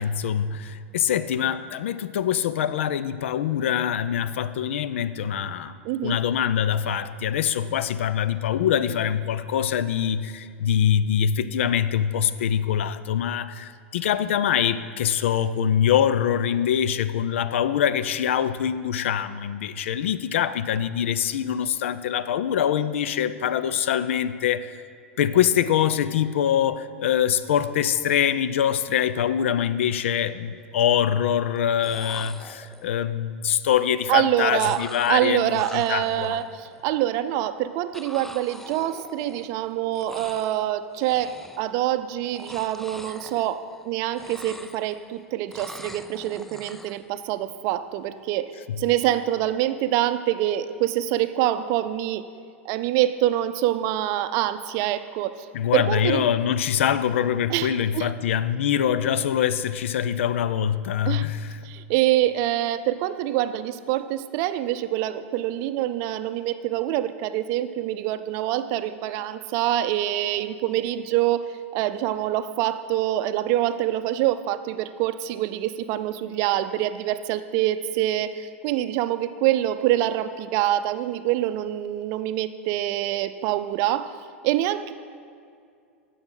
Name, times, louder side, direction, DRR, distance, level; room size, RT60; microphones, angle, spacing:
voice 1, 0.0-24.8 25.2-36.4 48.7-48.8 55.5-61.6, left 9 dB, 70° left, 14 dB, 0.4 m, -24 dB
voice 2, 5.8-6.2 34.1-34.8 35.1-48.5 48.8-52.2 52.6-55.5 55.7-56.3 57.5-58.1 61.1-61.3 61.6-71.5 71.7-84.1 84.4-84.9, right 13 dB, 50° right, 11 dB, 0.5 m, -25 dB
sound 1, 29.6-29.7 29.9-30.5 31.6-31.7 31.8-33.0 34.6-36.8 37.9-39.7 39.9-40.7 41.0-41.8 42.2-43.9 44.1-45.1 45.5-47.0, left 1 dB, 5° left, 0.4 m, -43 dB
16.5 x 6.2 x 3.9 m, 2.3 s
hypercardioid pair, 95°, 7 cm